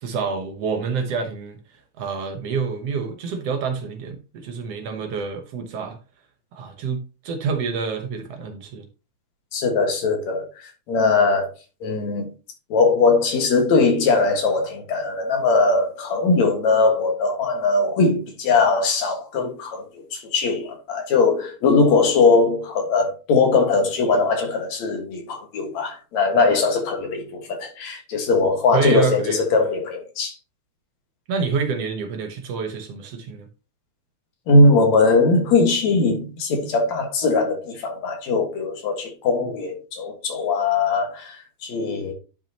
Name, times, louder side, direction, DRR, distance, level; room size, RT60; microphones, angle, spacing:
voice 1, 0.0-1.6 2.0-6.0 6.5-8.9 28.7-29.4 31.3-33.5, right 5 dB, 65° right, 1.9 m, -27 dB
voice 2, 9.5-11.5 11.8-12.3 12.7-30.4 34.5-42.1, left 3 dB, 70° left, 3.0 m, -20 dB
10.5 x 5.6 x 2.9 m
omnidirectional pair, 3.3 m